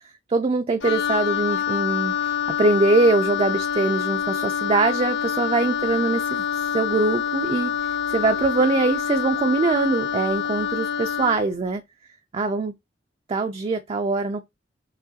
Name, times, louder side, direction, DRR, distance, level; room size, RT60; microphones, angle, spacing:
voice 1, 0.3-7.7 8.1-11.8 12.3-12.7 13.3-14.5, right 3 dB, 30° right, 0.4 m, -22 dB
Wind instrument woodwind instrument, 0.8-11.5, left 8 dB, 75° left, 0.5 m, -26 dB
5.9 x 3.0 x 2.7 m
head